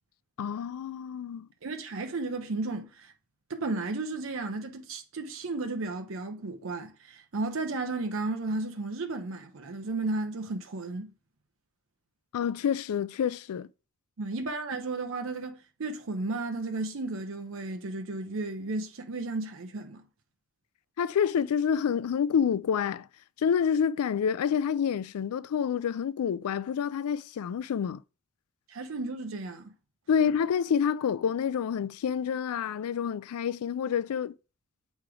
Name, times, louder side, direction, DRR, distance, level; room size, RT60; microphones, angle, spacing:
voice 1, 0.4-1.5 12.3-13.7 21.0-23.1 23.4-28.0 30.1-34.3, left 7 dB, 85° left, 0.3 m, -28 dB
voice 2, 1.6-3.1 3.5-11.1 14.2-20.0 28.7-29.7, right 3 dB, 65° right, 0.6 m, -34 dB
7.6 x 3.1 x 4.8 m
head